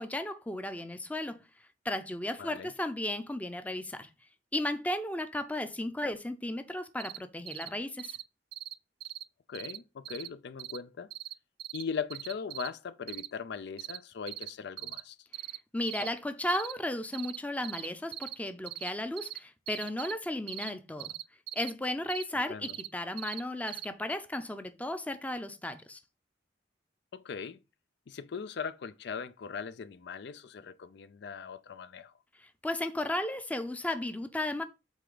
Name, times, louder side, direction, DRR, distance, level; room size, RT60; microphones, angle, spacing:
voice 1, 0.0-1.4 1.8-4.1 4.5-8.2 15.7-21.1 21.5-26.0 32.4-34.6, left 1 dB, 10° left, 0.6 m, -34 dB
voice 2, 2.4-2.7 9.5-11.1 11.7-15.2 22.5-22.7 27.1-27.6 28.1-32.1, left 6 dB, 65° left, 0.4 m, -39 dB
sound 1, 7.0-7.2 7.5-7.7 8.0-8.2 8.5-8.7 9.0-9.2 9.5-9.8 10.0-10.3 10.6-10.8 11.1-11.3 11.6-11.8 12.1-12.7 13.1-13.3 13.8-14.0 14.3-14.5 14.8-15.0 15.3-15.6 15.9-16.1 16.5-16.7 17.1-17.4 17.6-17.9 18.1-18.4 18.7-18.9 19.2-19.4 19.7-20.1 20.5-20.7 21.0-21.7 22.1-22.2 22.6-22.9 23.2-23.4 23.7-23.9 24.1-24.2, right 13 dB, 55° right, 0.3 m, -40 dB
8.1 x 3.4 x 3.8 m
head